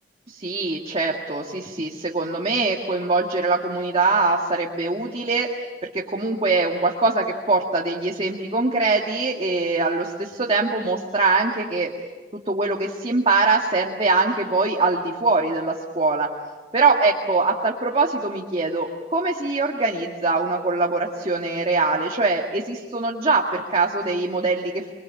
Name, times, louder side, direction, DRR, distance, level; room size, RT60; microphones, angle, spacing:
voice 1, 0.3-5.5 5.9-11.9 12.5-16.3 16.7-24.9, right 3 dB, 35° right, 0 dB, 1.9 m, -23 dB
28.0 x 22.0 x 8.8 m, 1.3 s
head